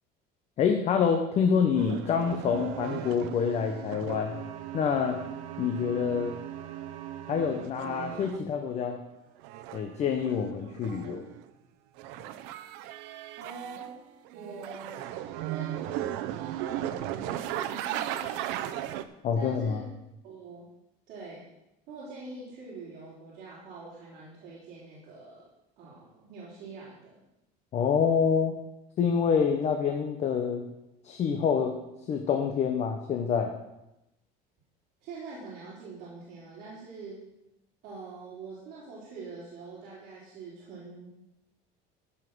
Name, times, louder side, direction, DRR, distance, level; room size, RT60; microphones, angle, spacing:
voice 1, 0.6-4.4 4.7-5.2 5.6-6.4 7.3-9.0 9.7-11.2 19.2-19.8 27.7-28.5 29.0-30.6 31.0-31.8 32.1-33.6, left 6 dB, 35° left, 4 dB, 1.0 m, -27 dB
sound 1, 1.8-8.4 9.4-11.4 12.0-13.9 14.2-19.0, right 12 dB, 75° right, 0.8 m, -37 dB
voice 2, 13.4-14.0 14.3-15.1 15.4-18.8 19.3-19.9 20.2-20.7 21.1-21.4 21.9-25.5 25.8-27.2 35.0-37.2 37.8-41.1, right 3 dB, 55° right, -8 dB, 3.8 m, -44 dB
14.5 x 5.7 x 6.2 m, 0.91 s
cardioid pair, 160°, 19 cm